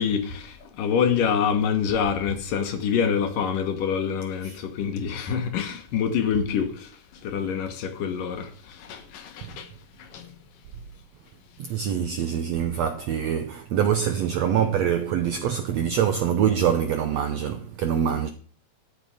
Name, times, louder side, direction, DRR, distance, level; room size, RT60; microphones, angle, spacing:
voice 1, 0.0-6.9 7.2-9.7 10.0-10.3, left 7 dB, 70° left, 2.8 m, -26 dB
voice 2, 11.6-18.3, right 8 dB, 80° right, 1.5 m, -24 dB
13.0 x 6.8 x 5.0 m
omnidirectional pair, 4.2 m